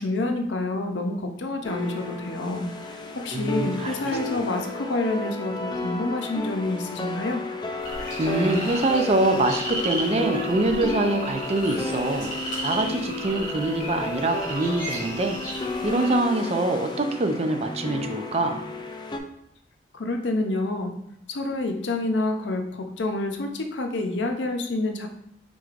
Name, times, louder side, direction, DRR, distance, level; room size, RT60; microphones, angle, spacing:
voice 1, 0.0-7.4 19.9-21.0 21.3-25.1, left 2 dB, 85° left, 5 dB, 0.6 m, -28 dB
sound 1, 1.6-19.2, left 3 dB, 25° left, 0.4 m, -33 dB
voice 2, 3.3-4.4 8.2-15.4 15.8-18.6, right 2 dB, 35° right, 5 dB, 0.5 m, -25 dB
sound 2, 7.8-16.2, right 1 dB, 50° left, 1.6 m, -35 dB
4.5 x 3.8 x 2.5 m, 0.77 s
head